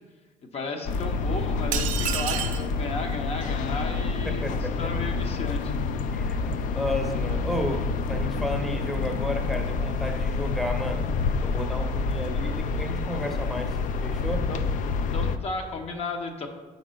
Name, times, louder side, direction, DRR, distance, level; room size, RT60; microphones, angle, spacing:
voice 1, 0.4-4.5 4.8-5.7 14.5-14.6 15.1-16.5, left 3 dB, 50° left, 4 dB, 0.8 m, -34 dB
sound 1, 0.8-15.4, left 4 dB, 70° left, 0.4 m, -28 dB
sound 2, 1.7-2.7, right 10 dB, 70° right, 0.5 m, -29 dB
voice 2, 4.2-4.9 6.1-11.1 11.4-14.5, left 1 dB, ahead, 3 dB, 0.7 m, -32 dB
5.2 x 4.7 x 5.1 m, 1.2 s
cardioid pair, 105°, 14 cm